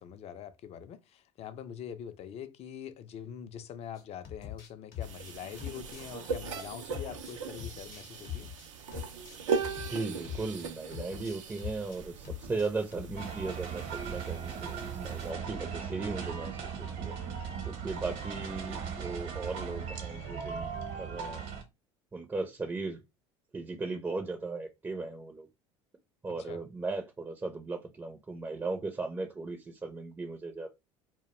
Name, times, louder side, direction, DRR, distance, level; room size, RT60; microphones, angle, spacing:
voice 1, 0.0-8.5 26.3-26.6, left 9 dB, 40° left, 0.4 m, -44 dB
sound 1, 4.0-10.7 10.9-12.0 12.2-13.2, left 9 dB, 60° left, 0.8 m, -43 dB
sound 2, 5.0-15.3, right 6 dB, 90° right, 0.4 m, -39 dB
voice 2, 9.9-17.1 17.7-20.7 21.0-21.4 22.1-23.0 23.5-25.5 26.2-30.7, right 3 dB, 15° right, 0.4 m, -37 dB
sound 3, 13.1-21.6, right 6 dB, 65° right, 0.8 m, -38 dB
2.2 x 2.1 x 2.9 m
hypercardioid pair, 75°, 16 cm